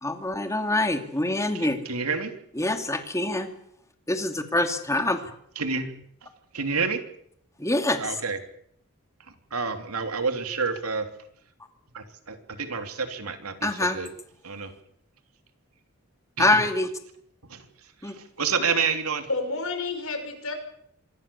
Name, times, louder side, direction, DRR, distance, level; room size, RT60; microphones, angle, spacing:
voice 1, 0.0-1.8 2.6-3.5 4.1-5.3 7.6-8.0 13.6-14.0 16.4-16.9 18.0-18.1, left 2 dB, 15° left, 6 dB, 2.5 m, -25 dB
voice 2, 1.5-2.3 5.5-5.9 6.5-7.0 8.0-8.4 9.5-11.1 11.9-14.1 14.4-14.7 16.4-16.6 17.5-17.7 18.0-19.3, right 5 dB, 90° right, 7 dB, 3.2 m, -29 dB
voice 3, 19.3-20.5, left 3 dB, 70° left, 7 dB, 5.9 m, -30 dB
26.0 x 20.0 x 7.1 m, 0.68 s
head